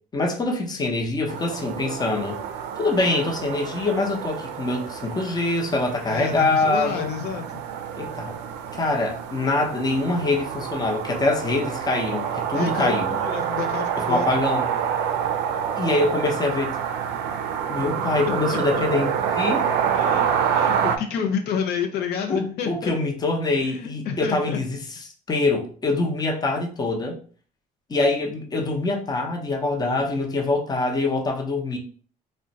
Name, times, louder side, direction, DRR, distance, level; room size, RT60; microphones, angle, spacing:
voice 1, 0.1-2.4 2.8-7.1 8.0-8.4 8.8-13.2 14.0-14.7 15.8-16.8 17.7-19.6 22.3-24.8 25.3-27.2 27.9-31.8, left 2 dB, 25° left, 0.7 m, -24 dB
sound 1, 1.3-21.0, right 8 dB, 80° right, 0.4 m, -27 dB
voice 2, 6.0-7.6 12.5-14.4 18.2-18.8 19.9-22.9 23.6-24.6, left 7 dB, 75° left, 0.5 m, -30 dB
2.4 x 2.1 x 3.9 m
cardioid pair, 110°, 17 cm